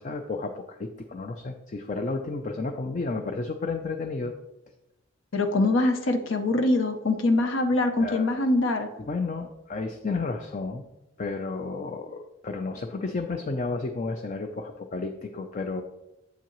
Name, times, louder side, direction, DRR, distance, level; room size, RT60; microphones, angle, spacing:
voice 1, 0.0-4.3 8.0-8.3 9.0-10.8 11.2-15.8, left 3 dB, 35° left, 6 dB, 0.4 m, -32 dB
voice 2, 5.3-8.9, left 2 dB, 70° left, 6 dB, 0.7 m, -23 dB
8.0 x 7.4 x 3.0 m, 0.97 s
head